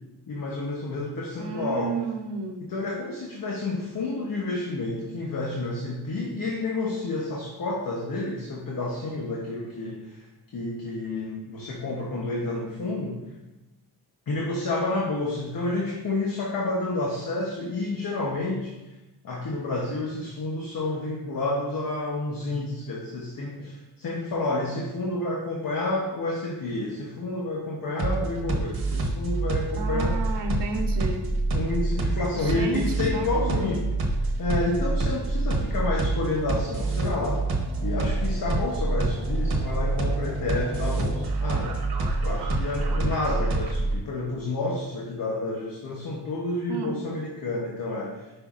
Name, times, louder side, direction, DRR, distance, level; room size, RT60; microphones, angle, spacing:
voice 1, 0.3-2.0 2.6-10.2 10.5-13.2 14.3-18.7 19.2-30.2 31.5-33.8 34.4-37.5 37.8-41.8 42.2-48.2, left 2 dB, 55° left, -2 dB, 0.9 m, -30 dB
voice 2, 1.4-2.6 29.7-31.3 32.3-33.9 46.7-47.0, right 2 dB, 80° right, 4 dB, 1.0 m, -32 dB
sound 1, 28.0-44.0, right 2 dB, 60° right, 1.2 m, -26 dB
9.9 x 5.4 x 2.5 m, 1.0 s
wide cardioid pair, 160°, 41 cm